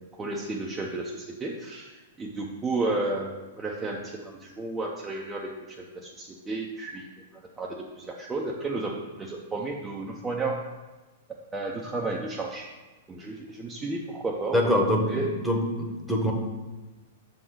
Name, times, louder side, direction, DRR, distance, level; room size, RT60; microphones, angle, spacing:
voice 1, 0.0-10.6 11.5-12.7 13.1-14.7 15.1-15.3, right 2 dB, 15° right, -2 dB, 0.6 m, -32 dB
voice 2, 14.5-16.3, left 1 dB, ahead, 0 dB, 1.0 m, -25 dB
6.0 x 3.9 x 6.2 m, 1.2 s
hypercardioid pair, 140°, 0 cm